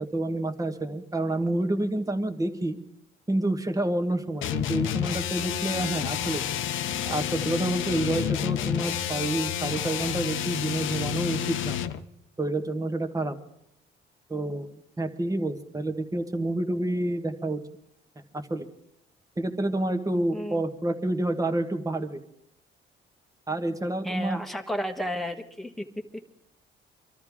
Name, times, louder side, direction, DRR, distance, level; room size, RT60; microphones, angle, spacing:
voice 1, 0.0-2.8 3.3-6.4 7.0-11.8 12.4-13.4 14.3-17.6 18.3-18.7 19.4-22.2 23.5-24.4, right 1 dB, 15° right, 8 dB, 1.5 m, -28 dB
sound 1, 4.4-12.0, left 10 dB, 80° left, 0.8 m, -29 dB
voice 2, 24.0-25.8, equal, ahead, 3 dB, 1.4 m, -32 dB
24.5 x 13.0 x 3.6 m, 0.75 s
cardioid pair, 90°, 20 cm